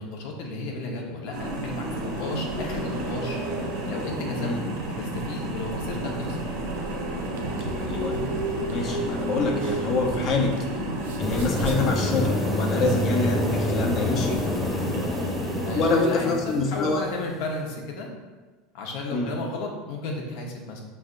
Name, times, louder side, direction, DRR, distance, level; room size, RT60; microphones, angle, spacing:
voice 1, 0.0-3.4 3.8-4.5 4.9-6.4 12.7-13.1 15.6-18.1 18.7-20.8, left 2 dB, 70° left, 0 dB, 0.9 m, -33 dB
sound 1, 1.3-15.9, right 1 dB, 65° right, 1.0 m, -31 dB
sound 2, 7.2-10.6 10.9-11.8, right 3 dB, 85° right, 0.5 m, -36 dB
voice 2, 7.8-8.3 8.7-10.6 11.2-14.4 15.7-17.1 19.1-19.3, left 3 dB, 40° left, 1 dB, 0.7 m, -26 dB
sound 3, 11.2-17.2, left 2 dB, 15° left, 0.3 m, -28 dB
5.3 x 3.4 x 2.5 m, 1.3 s
supercardioid pair, 135°, 0 cm